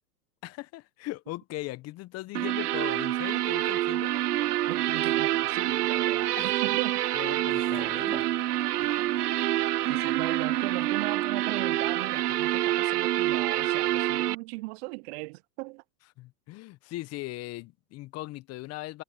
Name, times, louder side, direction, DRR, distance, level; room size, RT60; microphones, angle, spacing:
voice 1, 0.4-4.1 6.3-6.5 7.1-8.2 16.2-19.0, left 18 dB, 30° left, 1.0 m, -39 dB
sound 1, 2.3-14.3, right 14 dB, 75° right, 1.1 m, -27 dB
sound 2, 3.2-11.0, right 4 dB, 10° right, 3.4 m, -51 dB
voice 2, 4.7-7.0 8.8-9.1 9.9-15.8, right 25 dB, 40° right, 0.6 m, -38 dB
hypercardioid pair, 115°, 47 cm